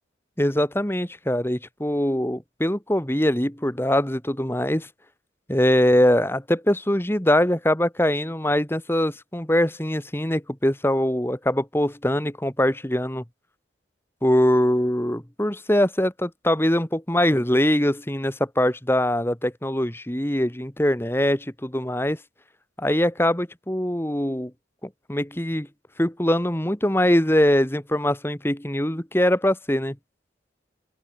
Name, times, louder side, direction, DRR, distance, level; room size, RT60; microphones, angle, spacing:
voice 1, 0.4-4.9 5.5-13.2 14.2-22.2 22.8-24.5 25.1-25.7 26.0-30.0, left 1 dB, 10° left, 1.7 m, -22 dB
open air
head